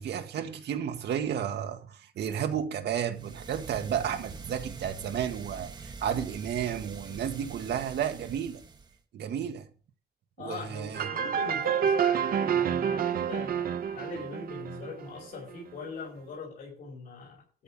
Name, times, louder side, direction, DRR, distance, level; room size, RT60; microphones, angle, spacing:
voice 1, 0.0-8.6 9.1-9.7 10.4-11.1, right 9 dB, 75° right, 1.9 m, -32 dB
sound 1, 3.1-9.0, right 4 dB, 25° right, 1.5 m, -44 dB
voice 2, 10.4-17.6, left 4 dB, 55° left, 5.4 m, -41 dB
sound 2, 10.9-15.5, right 8 dB, 60° right, 1.1 m, -28 dB
13.5 x 5.8 x 7.3 m
wide cardioid pair, 170°, 17 cm